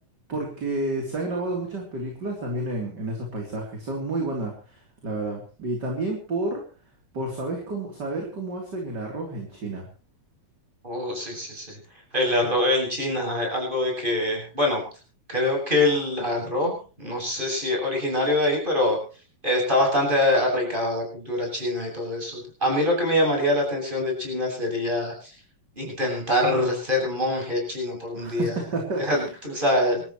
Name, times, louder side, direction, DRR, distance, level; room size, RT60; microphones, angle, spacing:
voice 1, 0.3-6.6 7.1-9.9 28.1-29.2, right 2 dB, 30° right, 0 dB, 3.7 m, -30 dB
voice 2, 10.8-11.8 12.1-14.8 15.3-19.0 19.4-25.3 25.8-28.5 29.0-30.0, left 1 dB, 15° right, 0 dB, 8.2 m, -24 dB
28.5 x 13.5 x 3.2 m, 0.37 s
omnidirectional pair, 4.0 m